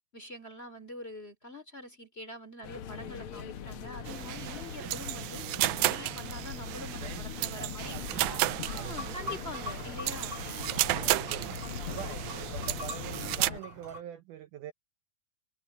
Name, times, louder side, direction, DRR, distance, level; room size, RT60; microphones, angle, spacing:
voice 1, 0.1-5.4 5.8-8.0 8.7-10.4, left 1 dB, 20° left, 2.9 m, -44 dB
sound 1, 2.6-13.6, left 8 dB, 75° left, 1.2 m, -41 dB
sound 2, 4.1-13.5, right 16 dB, 90° right, 1.7 m, -33 dB
voice 2, 6.9-7.2 7.6-9.1 10.8-14.7, right 11 dB, 75° right, 2.1 m, -45 dB
sound 3, 8.6-14.0, left 1 dB, 40° right, 4.2 m, -44 dB
omnidirectional pair, 4.1 m